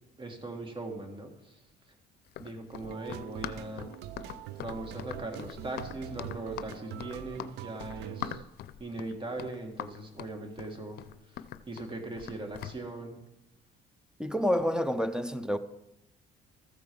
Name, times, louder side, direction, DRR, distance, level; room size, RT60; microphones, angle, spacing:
voice 1, 0.2-1.6 2.4-3.9 4.6-8.4 8.8-11.0 11.7-13.2, right 2 dB, 30° right, 1.9 m, -39 dB
Run, 2.3-12.8, left 12 dB, 70° left, 0.5 m, -42 dB
sound 1, 2.8-8.4, right 13 dB, 80° right, 0.4 m, -44 dB
voice 2, 14.2-15.6, equal, 5° right, 0.5 m, -28 dB
14.0 x 4.6 x 6.9 m
cardioid pair, 110°, 17 cm